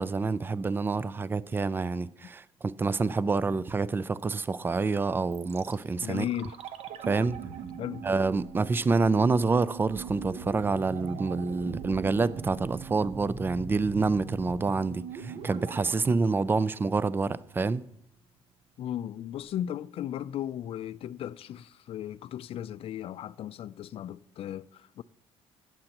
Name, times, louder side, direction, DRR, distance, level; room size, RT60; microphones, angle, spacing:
voice 1, 0.0-6.2 7.0-7.4 8.0-17.8, right 4 dB, 20° right, 0.4 m, -27 dB
sound 1, 5.3-17.3 17.6-17.7, right 6 dB, 60° right, 0.9 m, -41 dB
voice 2, 6.0-6.6 7.8-8.1 18.8-25.0, left 11 dB, 55° left, 0.4 m, -36 dB
16.5 x 7.8 x 2.9 m
cardioid pair, 105°, 11 cm